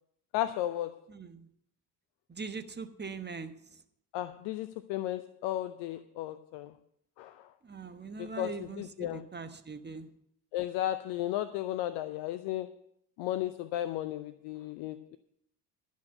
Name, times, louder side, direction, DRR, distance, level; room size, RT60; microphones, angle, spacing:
voice 1, 0.3-1.0 4.1-6.7 7.2-7.5 8.2-9.3 10.5-12.7 13.2-15.2, left 13 dB, 60° left, 0.6 m, -34 dB
voice 2, 1.1-1.5 2.3-3.5 7.6-10.1, right 5 dB, 20° right, 1.2 m, -41 dB
12.0 x 6.3 x 7.8 m
figure-of-eight pair, 45°, 47 cm